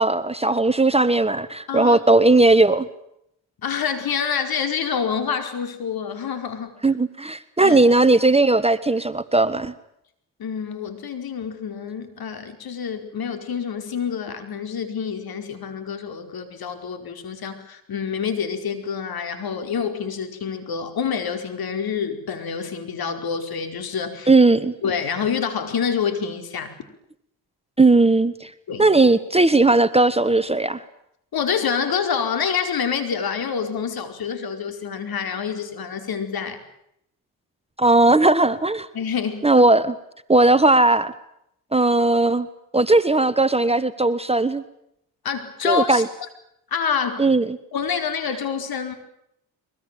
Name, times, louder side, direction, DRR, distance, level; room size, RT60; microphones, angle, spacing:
voice 1, 0.0-2.9 6.8-9.7 24.3-24.7 27.8-28.5 28.8-30.8 37.8-38.9 39.4-40.0 40.3-41.1 41.7-42.5 42.7-44.6 45.6-46.1 47.2-47.6, right 2 dB, 15° right, 13 dB, 1.3 m, -17 dB
voice 2, 1.7-2.0 3.6-6.7 7.6-7.8 10.4-24.3 24.8-26.7 28.7-28.9 31.3-36.6 38.9-39.4 45.2-46.0 46.7-47.2 47.7-48.9, left 6 dB, 55° left, 7 dB, 4.9 m, -27 dB
23.0 x 21.5 x 9.3 m, 0.76 s
supercardioid pair, 80°, 42 cm